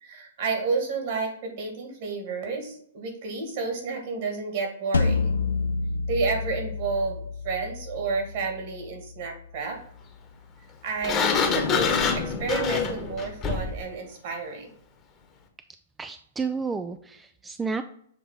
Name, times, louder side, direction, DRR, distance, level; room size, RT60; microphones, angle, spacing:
voice 1, 0.0-5.4 6.1-9.8 10.8-14.7, right 4 dB, 55° right, 3 dB, 2.0 m, -31 dB
sound 1, 4.9-10.0, left 4 dB, 80° left, 0.4 m, -29 dB
Sliding door, 11.0-13.8, left 5 dB, 25° left, 1.2 m, -25 dB
voice 2, 16.0-17.8, right 4 dB, 10° right, 8 dB, 0.3 m, -31 dB
7.3 x 2.9 x 4.8 m, 0.64 s
hypercardioid pair, 120°, 0 cm